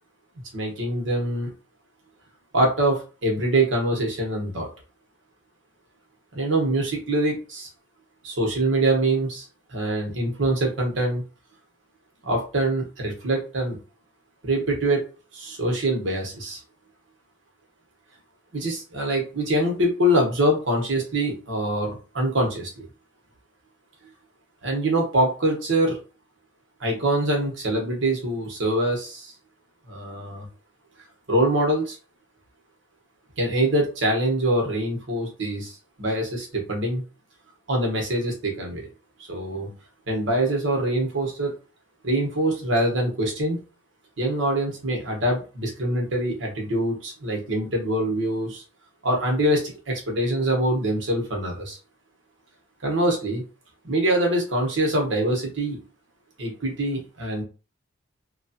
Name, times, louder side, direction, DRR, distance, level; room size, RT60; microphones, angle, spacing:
voice 1, 0.5-1.5 2.5-4.7 6.3-7.7 8.2-11.2 12.2-13.8 14.4-15.0 15.3-16.6 18.5-22.8 24.6-26.0 26.8-29.3 29.9-30.5 31.3-32.0 33.4-37.0 37.7-38.9 39.3-39.7 40.1-41.5 42.0-43.6 44.2-48.6 49.0-51.8 52.8-53.4 53.8-55.8 56.4-57.4, right 1 dB, 65° right, 0 dB, 1.0 m, -24 dB
3.0 x 2.3 x 2.8 m, 0.34 s
head